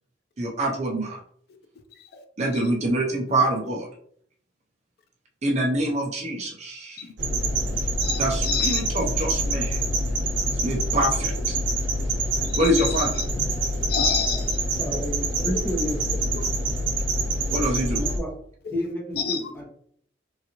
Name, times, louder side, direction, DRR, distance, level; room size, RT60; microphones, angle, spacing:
voice 1, 0.4-1.2 2.4-3.9 5.4-7.0 8.2-9.8 10.6-11.6 12.5-13.1 17.5-18.0, right 1 dB, 35° right, 0 dB, 0.6 m, -25 dB
sound 1, 7.2-18.2, right 2 dB, 85° right, 0.9 m, -26 dB
voice 2, 8.0-8.8 12.4-13.5 13.9-14.6 15.5-15.6 16.3-16.5 18.6-18.7 19.1-19.4, left 6 dB, 55° left, 6 dB, 0.4 m, -29 dB
voice 3, 14.8-16.0 18.0-18.3 18.7-19.7, equal, 10° left, -3 dB, 1.0 m, -30 dB
3.8 x 2.6 x 2.9 m, 0.62 s
head